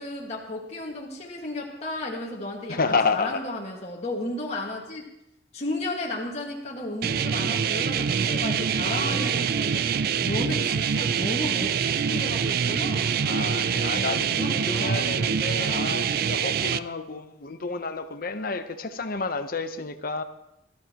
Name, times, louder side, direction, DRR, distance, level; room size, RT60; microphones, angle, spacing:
voice 1, 0.0-5.0 5.5-13.3 13.9-16.0, left 1 dB, 40° left, -3 dB, 1.9 m, -34 dB
voice 2, 2.7-3.4 8.8-9.2 13.2-20.2, left 4 dB, 55° left, 9 dB, 0.9 m, -30 dB
sound 1, 7.0-16.8, right 7 dB, 55° right, 0.4 m, -25 dB
19.0 x 13.5 x 3.0 m, 0.84 s
head